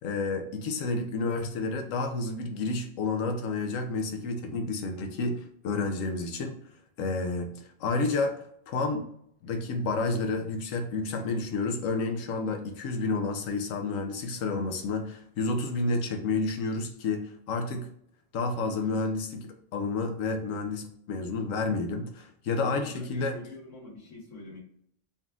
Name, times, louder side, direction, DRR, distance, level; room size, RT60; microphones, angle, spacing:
voice 1, 0.0-6.6 7.0-9.0 9.4-17.9 18.3-23.4, left 3 dB, 85° left, 4 dB, 1.0 m, -30 dB
voice 2, 22.8-24.6, left 3 dB, 70° left, -3 dB, 1.7 m, -45 dB
4.1 x 2.3 x 3.6 m, 0.69 s
omnidirectional pair, 1.3 m